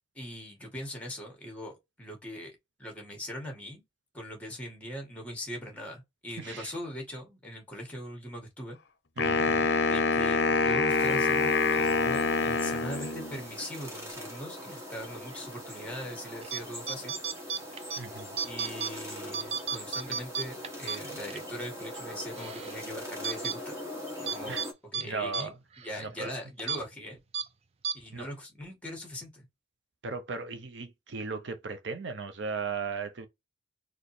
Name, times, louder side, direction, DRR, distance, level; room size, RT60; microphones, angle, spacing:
voice 1, 0.1-3.8 4.1-8.8 9.7-17.2 18.4-23.7 24.2-24.5 24.9-27.2 27.9-29.5, equal, 5° left, 1.8 m, -41 dB
voice 2, 6.4-6.7 9.2-9.7 18.0-18.3 24.5-24.6 25.1-25.5 26.0-26.3 28.1-28.3 30.0-33.3, right 4 dB, 70° right, 0.7 m, -36 dB
Wind instrument woodwind instrument, 9.2-13.4, left 4 dB, 60° left, 0.6 m, -26 dB
sound 1, 10.9-24.7, equal, 15° right, 1.5 m, -42 dB
sound 2, 16.4-16.6 16.9-18.0 18.4-18.9 19.3-21.4 21.8-21.9 22.4-22.8 23.2-23.6 24.3-24.7 24.9-25.0 25.3-25.4 25.8-25.9 26.6-26.8 27.3-27.5 27.8-28.0, right 6 dB, 35° right, 0.4 m, -33 dB
4.2 x 3.1 x 3.2 m
head